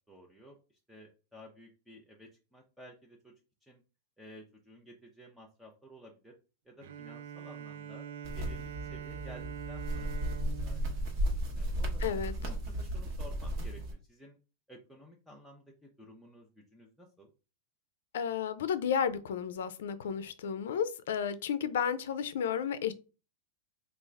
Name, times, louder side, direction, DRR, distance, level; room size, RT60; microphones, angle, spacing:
voice 1, 0.1-0.6 0.9-3.3 3.6-3.8 4.2-6.3 6.7-8.0 8.3-10.1 10.6-14.4 14.7-17.3, equal, ahead, 0.5 m, -54 dB
Bowed string instrument, 6.8-12.3, right 9 dB, 70° right, 0.4 m, -45 dB
sound 1, 8.2-13.9, right 1 dB, 45° right, 1.0 m, -35 dB
voice 2, 12.0-12.3 18.1-22.9, left 8 dB, 85° left, 0.4 m, -32 dB
3.4 x 2.4 x 3.2 m
supercardioid pair, 160°, 0 cm